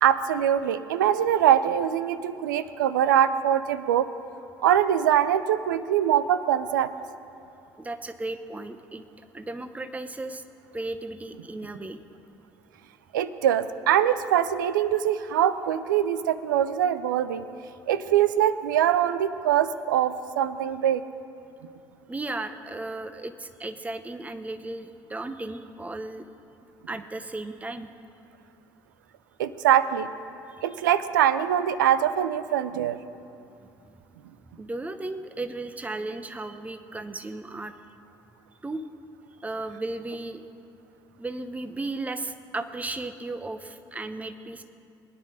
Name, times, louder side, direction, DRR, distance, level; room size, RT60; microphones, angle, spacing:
voice 1, 0.0-4.1 4.6-6.9 13.1-17.4 17.9-21.0 29.4-30.1 30.6-33.0, right 10 dB, 85° right, 13 dB, 0.5 m, -23 dB
voice 2, 7.8-10.4 10.7-12.0 22.1-26.3 26.9-27.9 30.5-30.6 33.8-33.9 34.4-37.8 38.6-38.8 39.4-40.4 41.2-44.6, right 2 dB, 15° right, 8 dB, 0.9 m, -35 dB
21.0 x 9.9 x 4.9 m, 2.6 s
hypercardioid pair, 60°, 10 cm